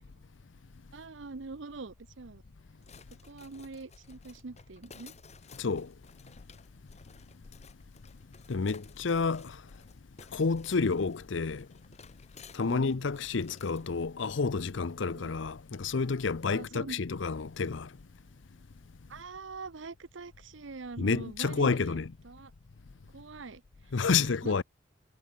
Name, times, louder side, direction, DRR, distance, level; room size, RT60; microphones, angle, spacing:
voice 1, 0.9-2.4 3.3-5.1 12.6-13.1 15.1-15.3 16.5-17.0 19.1-22.0 22.2-22.5 23.1-23.6 24.2-24.5, right 3 dB, 75° right, 0.8 m, -44 dB
sound 1, 2.8-13.9, left 5 dB, 35° left, 6.7 m, -56 dB
voice 2, 5.6-5.9 8.5-9.6 10.3-11.7 12.5-17.9 21.0-22.1 23.9-24.6, left 4 dB, 75° left, 0.6 m, -29 dB
head